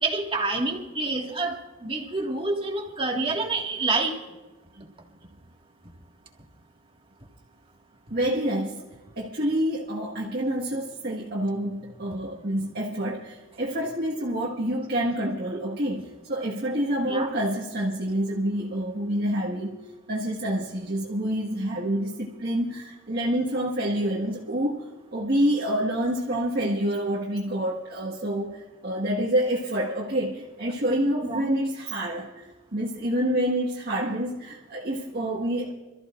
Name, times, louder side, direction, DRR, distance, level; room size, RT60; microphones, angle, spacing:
voice 1, 0.0-4.1 17.0-17.3 31.2-31.5, right 3 dB, 25° right, 1 dB, 1.9 m, -27 dB
voice 2, 8.1-8.8 9.2-19.8 20.1-24.8 25.1-32.4 32.7-35.7, right 1 dB, 50° right, -4 dB, 1.7 m, -27 dB
27.5 x 14.0 x 2.5 m, 1.1 s
head